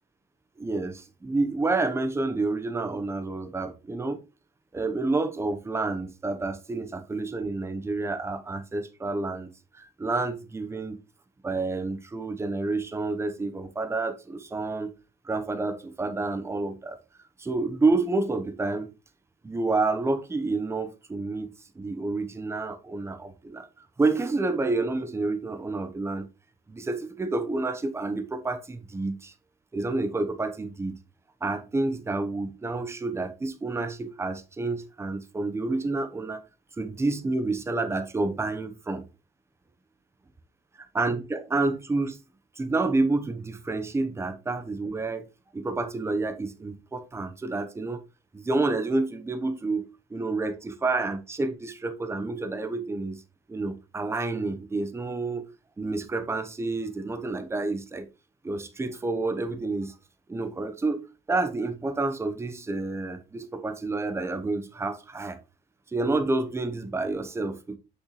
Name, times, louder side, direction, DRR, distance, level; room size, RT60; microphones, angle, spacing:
voice 1, 0.6-4.2 4.7-11.0 11.4-14.9 15.2-17.0 17.4-18.9 19.4-26.3 26.7-29.3 29.7-30.9 31.4-36.4 36.8-39.0 40.9-42.2 42.6-45.3 45.5-48.0 48.3-53.2 53.5-55.5 55.8-58.1 58.4-60.0 60.3-61.0 61.3-65.4 65.9-67.8, right 3 dB, 15° right, 0.9 m, -29 dB
6.5 x 5.7 x 3.1 m
cardioid pair, 110°, 17 cm